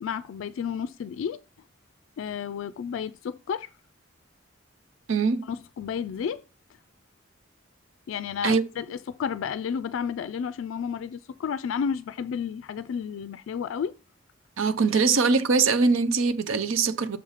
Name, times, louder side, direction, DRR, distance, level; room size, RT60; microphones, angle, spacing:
voice 1, 0.0-1.4 2.2-3.7 5.4-6.4 8.1-13.9 14.9-15.0, left 7 dB, 75° left, 0.3 m, -32 dB
voice 2, 5.1-5.5 8.4-8.6 14.6-17.2, right 4 dB, 90° right, 0.6 m, -22 dB
6.8 x 4.0 x 5.0 m
head